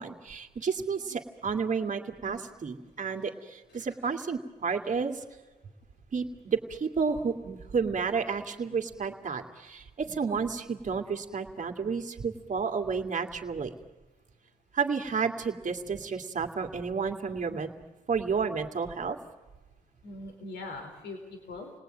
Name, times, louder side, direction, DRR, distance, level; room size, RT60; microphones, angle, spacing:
voice 1, 0.0-5.2 6.1-13.7 14.7-17.7 18.1-19.2, right 5 dB, 50° right, 4 dB, 2.5 m, -31 dB
voice 2, 20.0-21.7, left 2 dB, 85° left, 3 dB, 4.3 m, -42 dB
29.0 x 19.0 x 9.2 m, 1.2 s
cardioid pair, 85°, 17 cm